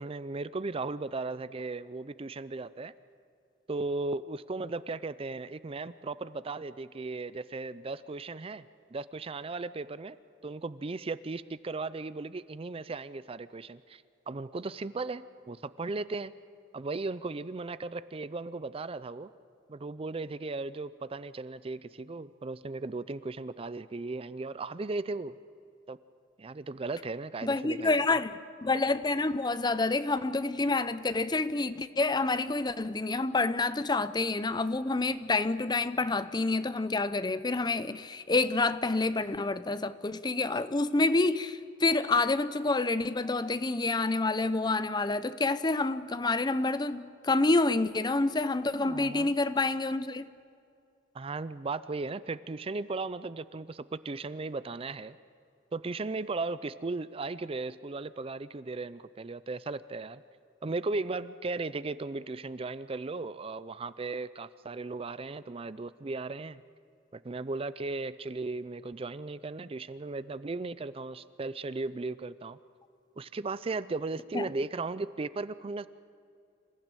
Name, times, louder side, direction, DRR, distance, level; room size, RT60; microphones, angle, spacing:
voice 1, 0.0-2.9 3.7-8.6 8.9-10.2 10.4-16.3 16.7-19.3 19.7-25.3 25.9-26.0 26.4-28.0 48.7-49.3 51.1-55.2 55.7-60.2 60.6-66.6 67.1-72.6 73.2-75.9, right 3 dB, 30° right, 0.5 m, -36 dB
voice 2, 27.4-28.3 28.6-50.3 74.3-74.4, left 3 dB, 20° left, 0.6 m, -28 dB
27.0 x 15.5 x 9.0 m
head